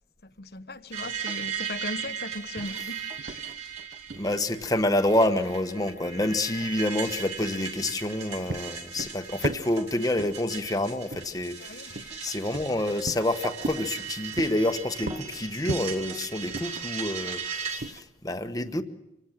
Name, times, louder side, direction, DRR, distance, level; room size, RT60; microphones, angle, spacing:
voice 1, 0.2-3.1 11.6-11.9, left 2 dB, 60° left, 1.1 m, -38 dB
sound 1, 0.9-17.8, right 6 dB, 40° right, 3.8 m, -37 dB
sound 2, 0.9-18.0, right 2 dB, 60° right, 0.8 m, -40 dB
voice 2, 4.2-18.8, left 1 dB, 20° left, 1.2 m, -28 dB
26.0 x 18.0 x 7.4 m
head